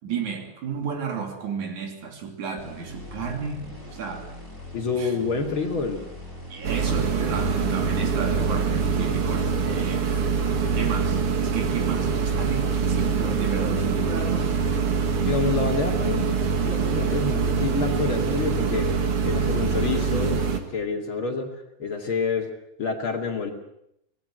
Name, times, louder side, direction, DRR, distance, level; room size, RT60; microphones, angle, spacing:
voice 1, 0.0-4.3 4.9-5.2 6.5-10.3 10.7-14.6, right 6 dB, 70° right, 4 dB, 4.4 m, -32 dB
sound 1, 2.6-9.0, left 1 dB, 5° right, 7.3 m, -41 dB
voice 2, 4.7-6.0 15.2-21.5 21.8-22.5 22.8-23.5, left 4 dB, 45° left, 2 dB, 3.0 m, -28 dB
sound 2, 6.6-20.6, right 5 dB, 50° right, 2.8 m, -24 dB
25.0 x 19.0 x 7.9 m, 0.78 s
omnidirectional pair, 3.5 m